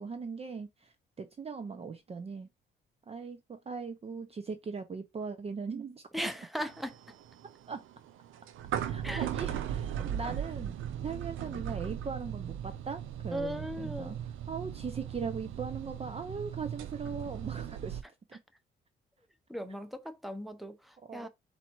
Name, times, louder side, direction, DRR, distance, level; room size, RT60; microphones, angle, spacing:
voice 1, 0.0-2.5 3.1-6.3 7.7-7.8 8.8-10.7 11.0-14.2 14.5-18.0 18.3-18.4 21.0-21.3, right 5 dB, 30° right, 0.6 m, -39 dB
voice 2, 6.1-7.0 9.0-9.3 13.3-14.1 19.5-21.3, equal, ahead, 0.8 m, -38 dB
sound 1, 6.7-18.0, right 10 dB, 85° right, 0.6 m, -38 dB
4.1 x 2.7 x 4.5 m
cardioid pair, 90°, 20 cm